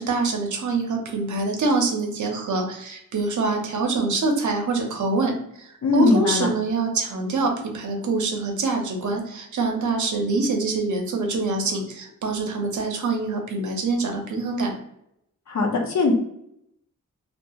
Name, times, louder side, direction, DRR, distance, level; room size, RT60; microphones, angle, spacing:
voice 1, 0.0-14.7, right 3 dB, 65° right, 2 dB, 0.6 m, -25 dB
voice 2, 5.8-6.5 15.5-16.1, left 3 dB, 60° left, 2 dB, 0.6 m, -20 dB
2.8 x 2.4 x 2.3 m, 0.76 s
wide cardioid pair, 175°, 33 cm